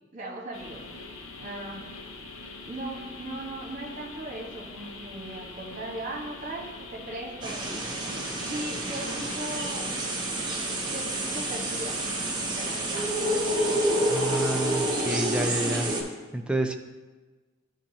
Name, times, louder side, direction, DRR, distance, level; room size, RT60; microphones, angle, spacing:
voice 1, 0.1-0.8 1.4-1.9 2.6-7.9 8.5-9.9 10.9-12.0 12.4-13.2, right 1 dB, 40° right, -3 dB, 1.4 m, -38 dB
sound 1, 0.5-15.9, left 3 dB, 70° left, 0.7 m, -43 dB
sound 2, 7.4-16.0, right 1 dB, 20° right, 0.8 m, -28 dB
voice 2, 14.1-15.9 16.3-16.8, right 1 dB, 5° right, 5 dB, 0.3 m, -29 dB
10.5 x 3.7 x 2.9 m, 1.3 s
head